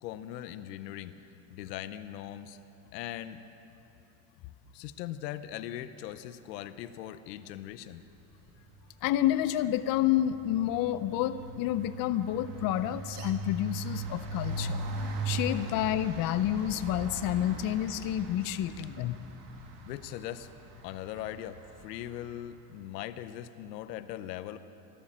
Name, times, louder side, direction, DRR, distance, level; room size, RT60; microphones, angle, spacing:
voice 1, 0.0-1.1 1.5-2.6 2.9-3.4 4.7-8.0 19.9-20.5 20.8-24.6, left 12 dB, 85° left, 12 dB, 0.8 m, -40 dB
sound 1, 8.5-8.8 9.1-22.2, right 2 dB, 55° right, 2.1 m, -40 dB
voice 2, 9.0-14.8 15.2-19.2, left 12 dB, 45° left, 12 dB, 0.6 m, -29 dB
14.0 x 12.5 x 7.3 m, 2.9 s
supercardioid pair, 95°, 48 cm